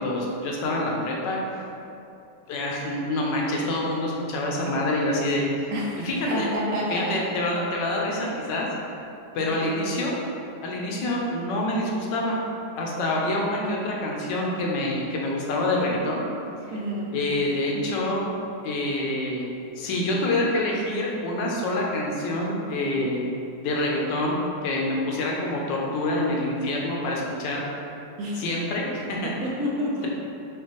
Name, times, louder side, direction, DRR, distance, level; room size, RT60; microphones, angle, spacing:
voice 1, 0.0-1.4 2.5-5.7 6.0-6.5 6.9-8.7 9.3-10.2 10.6-12.4 12.8-16.2 17.1-18.3 18.6-19.5 19.8-23.3 23.6-24.4 24.6-27.7 28.3-29.3, left 1 dB, 90° left, -2 dB, 1.3 m, -26 dB
voice 2, 5.7-7.2 9.5-9.7 16.7-17.1 17.7-18.0 28.2-28.4 29.2-30.1, equal, 70° right, -3 dB, 1.0 m, -29 dB
5.2 x 2.6 x 2.9 m, 2.7 s
omnidirectional pair, 1.8 m